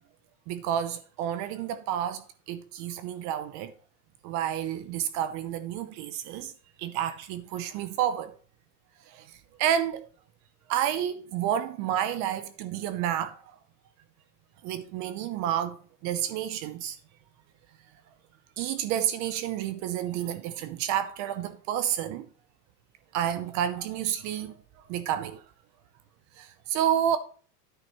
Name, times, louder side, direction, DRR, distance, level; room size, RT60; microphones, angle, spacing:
voice 1, 0.5-3.7 4.2-6.5 6.8-8.3 9.1-10.1 10.7-13.4 14.6-17.0 18.6-22.3 23.1-24.6 24.9-25.4 26.4-27.2, right 10 dB, 35° right, 0.6 m, -30 dB
10.0 x 8.9 x 3.0 m
supercardioid pair, 145°, 49 cm